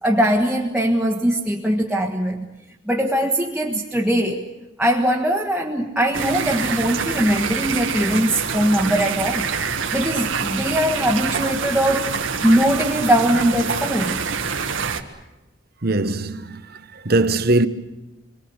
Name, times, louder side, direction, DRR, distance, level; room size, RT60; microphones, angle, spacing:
voice 1, 0.0-2.5 2.8-4.5 4.8-9.5 9.9-12.1 12.4-14.2, equal, 5° right, 1.6 m, -21 dB
sound 1, 6.1-15.0, right 5 dB, 75° right, 1.8 m, -26 dB
voice 2, 15.8-16.6 17.0-17.7, right 2 dB, 50° right, 1.2 m, -20 dB
27.5 x 23.5 x 8.0 m
head